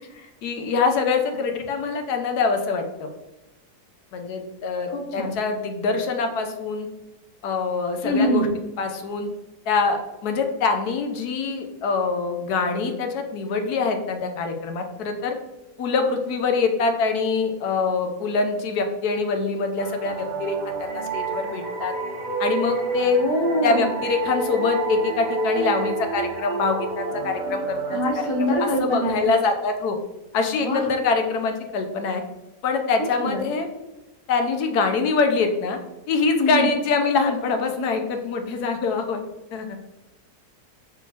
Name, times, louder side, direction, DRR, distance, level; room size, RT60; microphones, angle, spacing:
voice 1, 0.4-3.1 4.1-6.9 7.4-8.5 8.8-9.3 9.7-15.3 15.8-21.9 22.4-23.2 23.6-28.5 28.8-30.0 30.3-32.2 32.6-33.7 34.3-35.8 36.1-39.2 39.5-39.8, left 4 dB, 75° left, 5 dB, 1.2 m, -24 dB
voice 2, 4.9-5.3 8.0-8.5 23.1-23.9 27.9-29.3 30.6-30.9 33.2-33.4 36.4-36.7, equal, 45° left, 1 dB, 0.3 m, -24 dB
sound 1, 19.8-29.2, right 4 dB, 50° right, 0.9 m, -29 dB
5.0 x 3.8 x 2.8 m, 1.0 s
omnidirectional pair, 1.7 m